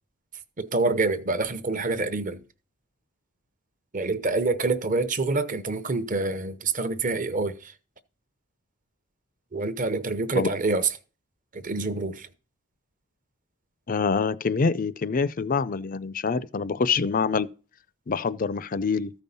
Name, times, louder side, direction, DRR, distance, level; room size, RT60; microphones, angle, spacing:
voice 1, 0.6-2.4 3.9-7.7 9.5-10.9 11.5-12.3, right 3 dB, 35° right, 0.8 m, -26 dB
voice 2, 13.9-17.5 18.1-19.1, left 5 dB, 40° left, 0.4 m, -25 dB
14.0 x 5.4 x 5.5 m
head